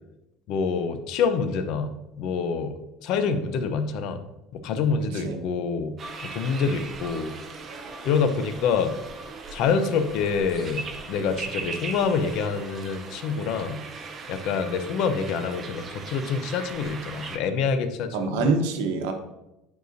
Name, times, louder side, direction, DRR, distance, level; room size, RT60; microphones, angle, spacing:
voice 1, 0.5-1.9 2.2-2.7 3.0-4.2 4.5-5.9 6.2-7.3 8.0-8.9 9.5-13.8 14.3-18.5, left 5 dB, 55° left, 9 dB, 0.6 m, -26 dB
voice 2, 5.1-5.5 18.1-19.1, right 4 dB, 90° right, 5 dB, 1.0 m, -26 dB
sound 1, 6.0-17.4, right 4 dB, 25° right, 0.7 m, -39 dB
9.3 x 4.8 x 2.6 m, 0.93 s
cardioid pair, 155°, 0 cm